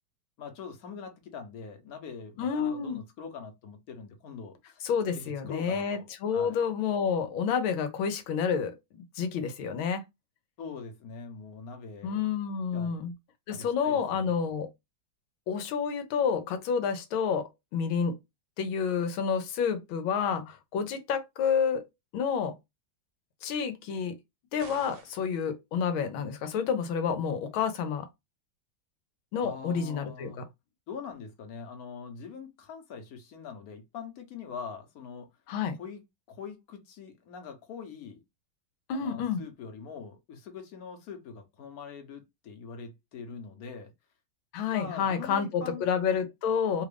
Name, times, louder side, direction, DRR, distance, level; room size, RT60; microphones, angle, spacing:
voice 1, 0.4-4.8 5.1-6.6 10.6-12.2 12.7-13.1 13.5-14.3 29.4-30.5 30.9-35.3 35.8-36.0 36.3-38.2 38.9-43.9 44.7-45.8, left 5 dB, 55° left, 1.2 m, -43 dB
voice 2, 2.4-3.0 4.8-10.0 12.0-13.1 13.5-14.7 15.5-18.2 18.6-21.8 22.1-22.6 23.4-24.2 24.5-28.1 29.3-30.4 35.5-35.8 38.9-39.4 44.5-46.9, left 6 dB, 90° left, 1.5 m, -29 dB
sound 1, 24.6-25.3, right 5 dB, 70° right, 0.6 m, -49 dB
3.4 x 2.4 x 3.3 m
omnidirectional pair, 2.2 m